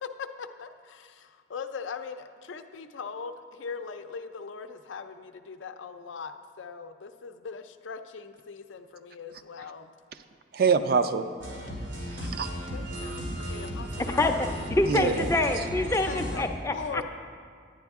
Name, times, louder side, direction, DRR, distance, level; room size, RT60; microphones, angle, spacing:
voice 1, 0.0-9.9 12.2-12.4 12.7-14.3 16.1-16.5 16.7-17.0, left 5 dB, 85° left, 9 dB, 0.5 m, -40 dB
voice 2, 10.5-11.3 12.2-12.5 14.9-15.3 17.0-17.1, right 5 dB, 50° right, 9 dB, 0.4 m, -24 dB
sound 1, 11.4-16.4, equal, 90° right, 2.3 m, -35 dB
voice 3, 14.1-17.0, left 2 dB, 15° left, 5 dB, 0.4 m, -26 dB
10.0 x 10.0 x 3.5 m, 2.1 s
head